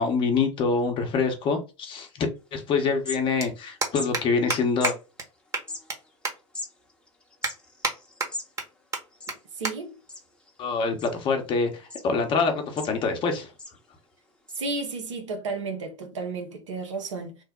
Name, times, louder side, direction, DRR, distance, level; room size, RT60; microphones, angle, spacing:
voice 1, 0.0-2.3 2.5-4.9 10.6-13.5, left 4 dB, 30° left, 0.9 m, -25 dB
sound 1, 1.1-1.2 2.6-2.7 2.9-3.1 3.4-3.5 3.8-4.2 4.5-4.6 4.8-4.9 5.2-5.3 5.5-6.0 6.2-6.3 6.8-6.9 7.4-7.9 8.2-8.6 8.9-9.0 9.3-9.4 9.6-9.7 10.1-10.3 11.1-11.3, right 3 dB, 20° right, 1.0 m, -28 dB
sound 2, 2.5-2.6 2.8-3.6 3.9-4.1 4.8-5.0 5.6-8.5 8.8-8.9 9.1-9.7 10.1-10.5 11.0-11.5 11.9-12.0 12.5-13.2 13.6-13.8 14.5-14.6, left 2 dB, 5° left, 0.9 m, -39 dB
voice 2, 9.6-10.0 14.6-17.4, right 3 dB, 75° right, 1.0 m, -32 dB
3.3 x 2.1 x 3.6 m
hypercardioid pair, 100°, 16 cm